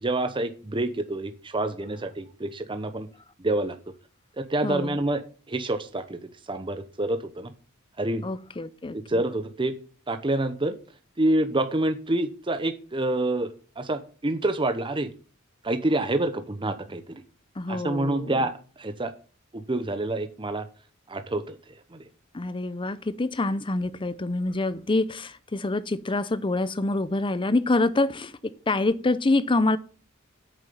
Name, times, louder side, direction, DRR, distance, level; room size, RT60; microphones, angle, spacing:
voice 1, 0.0-3.1 3.4-3.8 4.4-5.2 5.5-7.5 8.0-8.2 9.1-9.7 10.1-10.8 11.2-15.1 15.6-17.2 17.7-19.1 19.5-20.7 21.1-22.0, right 2 dB, 25° right, 0.9 m, -27 dB
voice 2, 4.6-5.0 8.2-9.0 17.6-18.4 22.3-29.8, left 2 dB, 25° left, 0.6 m, -26 dB
9.0 x 6.9 x 7.0 m
head